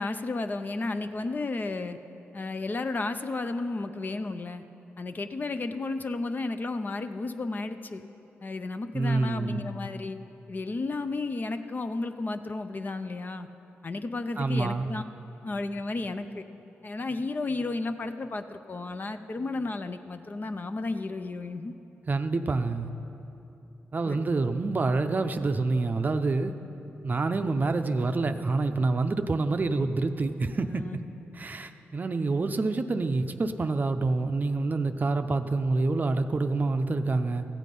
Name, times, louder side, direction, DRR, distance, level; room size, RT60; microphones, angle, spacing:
voice 1, 0.0-2.0 2.3-4.6 5.0-8.0 8.4-10.2 10.5-13.5 13.8-15.0 15.4-16.4 16.8-21.7 24.0-24.2 30.8-31.0, left 3 dB, 40° left, 9 dB, 0.6 m, -33 dB
voice 2, 8.9-9.6 14.4-14.9 22.1-22.9 23.9-26.5 27.0-31.0 31.3-37.4, right 3 dB, 40° right, 8 dB, 0.6 m, -27 dB
14.5 x 8.3 x 5.3 m, 2.9 s
cardioid pair, 75°, 5 cm